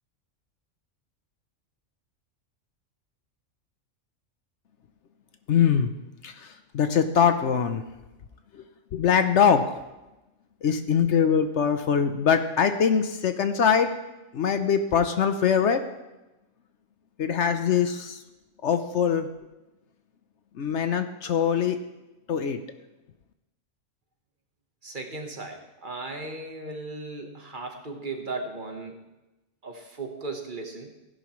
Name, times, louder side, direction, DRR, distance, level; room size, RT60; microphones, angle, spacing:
voice 1, 5.5-5.9 6.2-7.8 8.5-8.7 8.9-9.7 10.6-13.9 14.3-15.8 17.2-18.2 18.6-19.3 20.6-21.8 22.3-22.6, left 7 dB, 65° left, 8 dB, 1.0 m, -23 dB
voice 2, 24.8-29.0 29.6-30.9, right 3 dB, 40° right, 3 dB, 1.4 m, -36 dB
16.5 x 11.0 x 3.1 m, 1.0 s
omnidirectional pair, 1.4 m